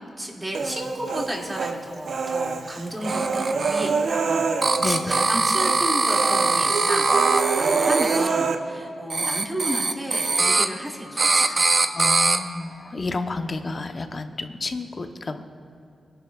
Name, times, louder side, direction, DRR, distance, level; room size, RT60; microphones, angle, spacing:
voice 1, 0.2-11.8, right 1 dB, 15° right, -2 dB, 2.4 m, -32 dB
Human voice, 0.5-1.7 2.1-5.3 5.6-5.8 6.1-8.6, right 5 dB, 75° right, 0.7 m, -25 dB
sound 1, 3.0-3.9 4.6-8.3 9.1-10.7 11.2-12.4, right 3 dB, 40° right, 0.7 m, -22 dB
voice 2, 4.8-5.2 11.9-15.4, left 3 dB, 45° left, 6 dB, 0.9 m, -30 dB
22.0 x 11.0 x 2.4 m, 2.6 s
cardioid pair, 65°, 0 cm